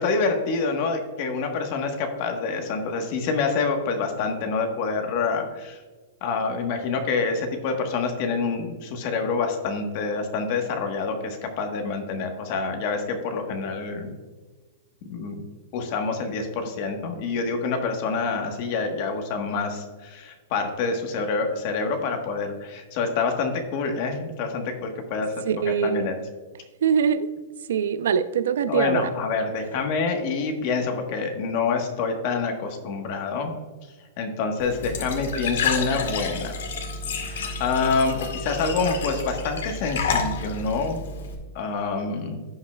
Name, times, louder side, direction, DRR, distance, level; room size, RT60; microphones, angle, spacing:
voice 1, 0.0-5.8 6.2-14.1 15.1-15.4 15.7-25.3 25.6-26.1 28.7-33.5 34.2-36.6 37.2-41.0 41.5-42.4, left 4 dB, 35° left, 4 dB, 1.3 m, -27 dB
voice 2, 25.5-26.1 26.8-27.3 27.7-29.1, right 7 dB, 80° right, 12 dB, 0.6 m, -23 dB
Glass / Trickle dribble / Fill (with liquid), 34.6-41.3, left 4 dB, 85° left, 1.9 m, -30 dB
16.0 x 5.6 x 2.3 m, 1.3 s
supercardioid pair, 175°, 0 cm